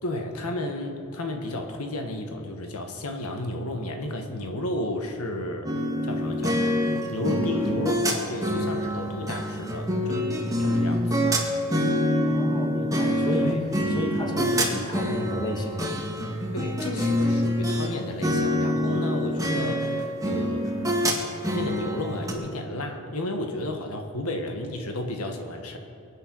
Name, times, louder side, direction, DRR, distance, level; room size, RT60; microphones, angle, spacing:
voice 1, 0.0-5.7 6.0-6.6 7.1-11.3 13.3-13.6 16.5-20.7 21.5-25.8, left 1 dB, 85° left, 4 dB, 1.5 m, -32 dB
sound 1, 5.6-17.9 18.2-22.3, equal, 15° right, 1.9 m, -26 dB
voice 2, 12.2-15.9, equal, 20° left, 0 dB, 2.0 m, -31 dB
22.5 x 9.2 x 6.2 m, 2.5 s
head